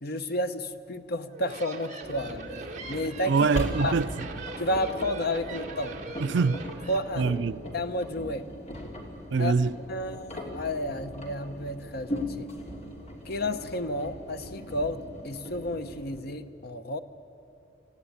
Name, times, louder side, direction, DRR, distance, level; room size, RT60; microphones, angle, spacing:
voice 1, 0.0-3.4 3.8-4.0 4.6-6.0 6.9-7.3 7.7-8.5 9.4-9.5 9.9-12.5 13.3-17.0, left 1 dB, 60° left, 1.0 m, -31 dB
sound 1, 1.2-7.0, right 3 dB, 45° right, 2.1 m, -41 dB
Engine, 2.0-16.2, left 1 dB, 40° left, 3.1 m, -39 dB
voice 2, 3.3-4.3 6.2-6.7 7.2-7.6 9.3-9.8, right 4 dB, 70° right, 0.5 m, -24 dB
26.5 x 15.5 x 9.9 m
head